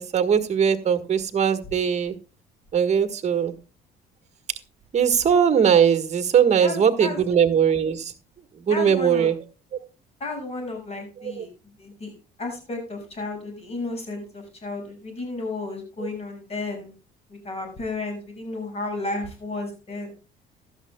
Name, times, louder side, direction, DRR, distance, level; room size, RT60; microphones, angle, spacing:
voice 1, 0.0-2.1 2.7-3.5 4.9-8.1 8.7-9.4 11.2-11.4, right 8 dB, 40° right, 10 dB, 1.5 m, -20 dB
voice 2, 6.6-7.2 8.7-9.3 10.2-11.5 11.8-12.1 12.4-16.9 17.3-20.1, left 2 dB, 35° left, 4 dB, 6.6 m, -33 dB
15.5 x 12.5 x 2.3 m, 0.33 s
cardioid pair, 110°, 17 cm